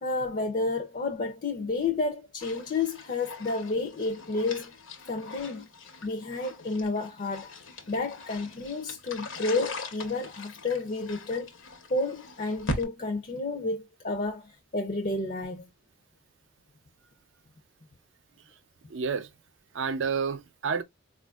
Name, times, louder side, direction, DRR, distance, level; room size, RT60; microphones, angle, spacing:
voice 1, 0.0-4.7 5.1-5.7 6.0-11.5 11.9-15.7, left 3 dB, 40° left, 0.5 m, -31 dB
sound 1, 2.4-12.8, left 2 dB, 80° left, 0.9 m, -40 dB
voice 2, 18.9-19.3 19.7-20.8, right 5 dB, 70° right, 0.5 m, -30 dB
4.3 x 2.4 x 2.3 m
head